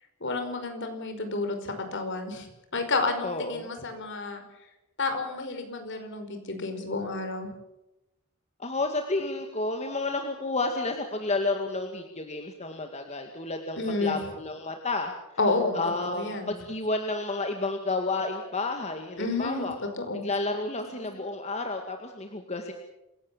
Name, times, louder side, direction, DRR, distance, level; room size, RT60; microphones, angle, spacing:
voice 1, 0.2-4.4 5.0-7.5 13.8-14.2 15.4-15.8 16.1-16.5 19.2-19.7 20.0-20.3 21.0-21.1, left 3 dB, 55° left, 6 dB, 5.2 m, -30 dB
voice 2, 3.2-3.7 8.6-15.1 15.7-19.8 20.2-22.7, left 2 dB, 30° left, 4 dB, 2.1 m, -31 dB
28.0 x 17.0 x 7.4 m, 0.91 s
head